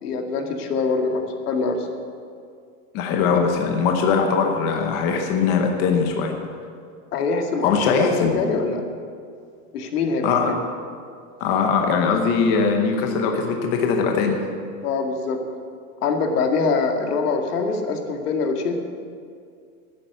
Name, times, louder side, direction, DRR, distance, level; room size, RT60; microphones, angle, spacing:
voice 1, 0.0-1.9 7.1-8.8 9.7-10.3 14.8-15.4 16.0-18.8, left 4 dB, 90° left, 3 dB, 2.2 m, -24 dB
voice 2, 2.9-6.3 7.6-8.4 10.2-10.6 11.4-14.4, left 5 dB, 20° left, 3 dB, 0.9 m, -21 dB
12.0 x 10.0 x 8.1 m, 2.3 s
supercardioid pair, 180°, 45 cm